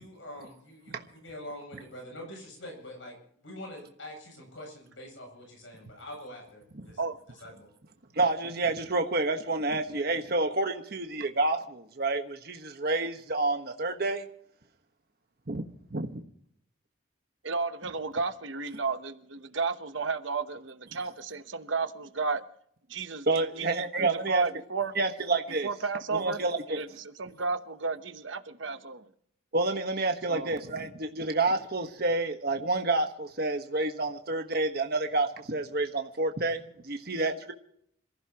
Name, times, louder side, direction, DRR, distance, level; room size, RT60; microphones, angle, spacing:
voice 1, 0.0-7.0 7.4-7.7, left 1 dB, 70° left, 7.8 m, -45 dB
voice 2, 8.1-14.2 15.5-15.6 15.9-16.2 23.3-24.4 24.9-25.7 26.1-26.8 29.5-37.5, right 2 dB, 50° right, 1.4 m, -29 dB
voice 3, 17.4-22.4 22.9-24.9 25.6-26.4 26.7-29.1 30.3-30.6, right 4 dB, 70° right, 1.0 m, -33 dB
27.0 x 15.0 x 3.0 m
head